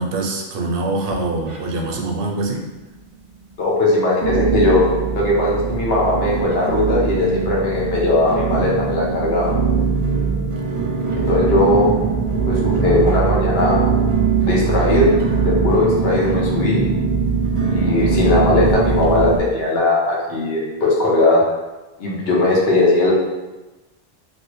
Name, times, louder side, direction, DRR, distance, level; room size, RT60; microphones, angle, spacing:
voice 1, 0.0-2.7, right 2 dB, 70° right, 1 dB, 0.8 m, -24 dB
sound 1, 1.0-2.0 2.2-2.9 3.4-3.5 4.2-19.4, right 5 dB, 45° right, 0.4 m, -21 dB
voice 2, 3.6-4.9 5.1-9.5 11.2-11.9 12.5-13.8 14.4-15.1 15.4-16.8 17.6-21.4 22.0-23.1, left 2 dB, 80° left, -4 dB, 1.1 m, -18 dB
3.0 x 2.6 x 3.0 m, 1.1 s
omnidirectional pair, 1.0 m